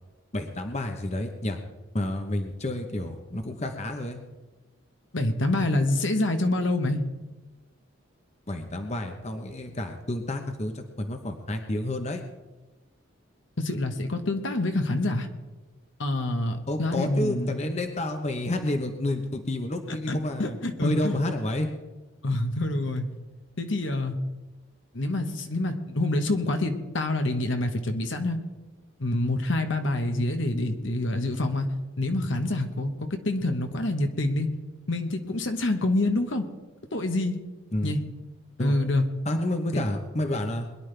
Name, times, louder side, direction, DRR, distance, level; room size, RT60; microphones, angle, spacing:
voice 1, 0.3-1.6 1.9-4.2 8.5-12.2 16.7-21.7 37.7-37.9 38.6-38.7 39.3-40.7, left 1 dB, 35° left, 5 dB, 0.9 m, -30 dB
voice 2, 5.1-7.0 13.6-15.3 16.0-17.7 19.9-21.2 22.2-23.1 23.6-24.2 24.9-28.4 29.0-31.7 32.0-34.5 34.9-36.5 36.9-37.4 37.8-38.0 38.6-39.0 39.7-39.8, left 2 dB, 65° left, 6 dB, 1.3 m, -26 dB
22.0 x 11.0 x 3.4 m, 1.2 s
head